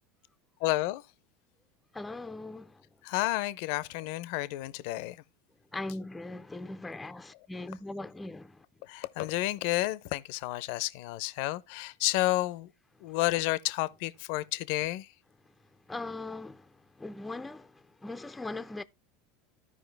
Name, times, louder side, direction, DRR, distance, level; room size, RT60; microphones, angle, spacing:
voice 1, 0.6-1.0 3.0-5.2 8.8-12.7 13.0-15.1, left 18 dB, 70° left, 0.6 m, -31 dB
voice 2, 1.9-2.8 5.7-8.6 15.9-16.7 17.0-18.8, left 2 dB, 10° left, 0.5 m, -40 dB
13.5 x 5.0 x 3.3 m
supercardioid pair, 110°, 0 cm